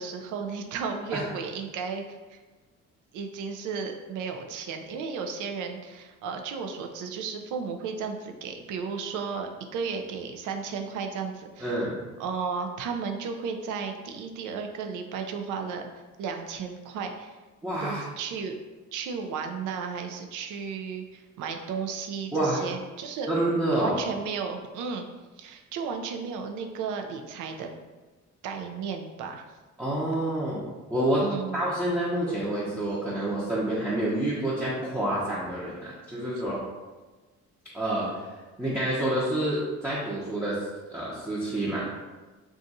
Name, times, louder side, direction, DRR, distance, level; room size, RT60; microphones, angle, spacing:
voice 1, 0.0-2.4 3.1-11.7 12.2-15.9 16.2-17.3 17.8-18.5 18.9-23.3 23.8-25.1 25.4-27.7 28.4-29.4 31.2-31.6, right 5 dB, 90° right, 4 dB, 0.5 m, -34 dB
voice 2, 11.6-12.1 17.6-18.1 22.3-22.7 23.3-24.0 29.8-30.6 30.9-31.2 31.5-36.6 37.7-38.1 38.6-41.8, right 1 dB, 10° right, -8 dB, 0.7 m, -28 dB
2.5 x 2.4 x 4.0 m, 1.3 s
cardioid pair, 90°, 30 cm